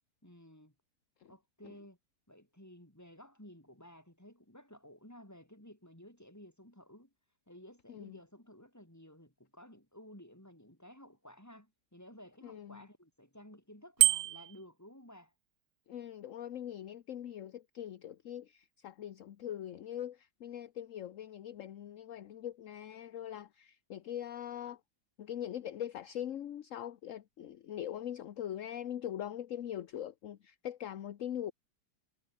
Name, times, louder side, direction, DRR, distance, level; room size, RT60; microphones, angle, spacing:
voice 1, 0.2-0.7 1.2-2.0 2.3-7.1 7.5-15.3, equal, 10° left, 6.0 m, -55 dB
voice 2, 12.4-12.8 15.9-24.8 25.2-31.5, left 10 dB, 55° left, 1.1 m, -42 dB
Bicycle bell, 14.0-14.6, right 14 dB, 75° right, 1.2 m, -26 dB
omnidirectional pair, 1.8 m